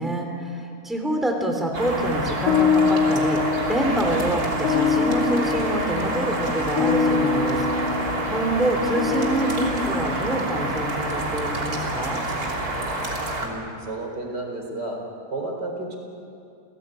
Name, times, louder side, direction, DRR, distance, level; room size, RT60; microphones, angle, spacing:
voice 1, 0.0-12.2, right 1 dB, ahead, 3 dB, 3.0 m, -26 dB
sound 1, 1.7-13.5, right 2 dB, 60° right, 3.6 m, -28 dB
sound 2, 2.5-11.1, left 5 dB, 55° left, 2.6 m, -25 dB
voice 2, 13.4-15.0 15.3-16.0, right 2 dB, 75° right, 2 dB, 4.7 m, -32 dB
29.5 x 17.5 x 9.1 m, 2.5 s
omnidirectional pair, 1.8 m